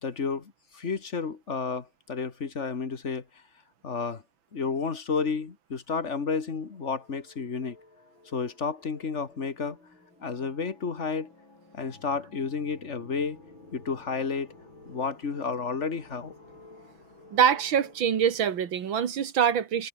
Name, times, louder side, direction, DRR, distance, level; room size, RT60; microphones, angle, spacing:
voice 1, 0.0-3.2 3.8-4.2 4.5-7.8 8.3-9.8 10.2-11.3 11.7-13.4 13.7-14.5 14.9-16.3, left 5 dB, 35° left, 2.0 m, -31 dB
sound 1, 6.2-18.7, left 2 dB, 70° left, 8.7 m, -53 dB
voice 2, 17.3-19.9, right 8 dB, 70° right, 2.4 m, -24 dB
omnidirectional pair, 2.2 m